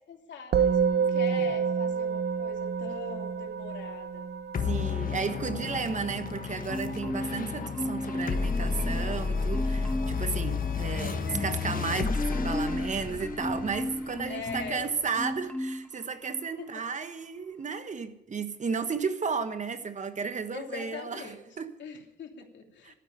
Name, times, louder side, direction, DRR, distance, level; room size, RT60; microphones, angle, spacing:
voice 1, 0.1-4.3 14.2-14.9 16.6-16.7 20.5-21.4 21.8-23.0, left 5 dB, 65° left, 3.0 m, -42 dB
Musical instrument, 0.5-10.0, right 6 dB, 55° right, 1.1 m, -30 dB
sound 1, 4.5-15.3, left 5 dB, 45° left, 1.5 m, -32 dB
voice 2, 4.6-21.7 22.8-22.9, right 5 dB, 40° right, 1.3 m, -33 dB
Marimba xylophone, 6.7-7.5 7.7-9.2 9.5-10.2 10.6-14.8 15.2-15.9 16.3-16.5, left 1 dB, 5° left, 0.7 m, -35 dB
12.5 x 9.6 x 10.0 m
cardioid pair, 90°, 20 cm